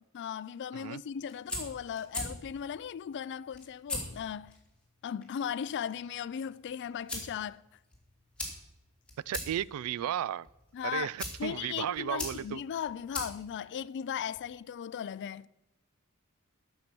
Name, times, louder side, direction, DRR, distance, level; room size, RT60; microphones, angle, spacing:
voice 1, 0.1-4.6 5.0-7.6 10.7-11.1 11.4-15.5, left 8 dB, 55° left, 0.3 m, -37 dB
sound 1, 1.1-14.5, left 2 dB, 5° left, 2.5 m, -43 dB
voice 2, 9.3-10.5 10.8-12.6, right 10 dB, 70° right, 0.3 m, -34 dB
11.5 x 6.6 x 6.0 m
head